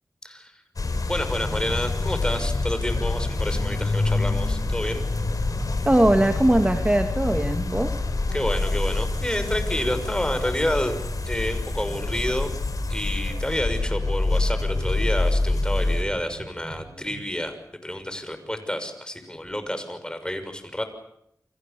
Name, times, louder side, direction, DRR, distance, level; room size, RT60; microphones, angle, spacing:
sound 1, 0.8-16.0, left 2 dB, 70° left, 4.3 m, -26 dB
voice 1, 1.0-5.0 8.3-10.9 11.3-12.5 12.9-17.6 17.8-20.8, left 1 dB, 15° left, 8 dB, 6.3 m, -29 dB
sound 2, 2.8-17.2, right 3 dB, 80° right, 7.8 m, -42 dB
voice 2, 5.9-8.0, right 1 dB, 20° right, 5 dB, 2.2 m, -20 dB
29.5 x 25.0 x 7.0 m, 0.76 s
cardioid pair, 50°, 6 cm